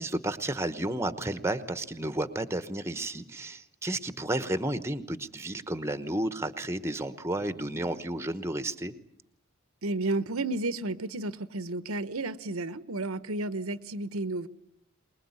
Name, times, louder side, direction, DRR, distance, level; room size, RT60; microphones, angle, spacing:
voice 1, 0.0-8.9, right 1 dB, 10° right, 1.0 m, -32 dB
voice 2, 9.8-14.5, right 2 dB, 75° right, 1.0 m, -32 dB
23.5 x 21.5 x 9.6 m
head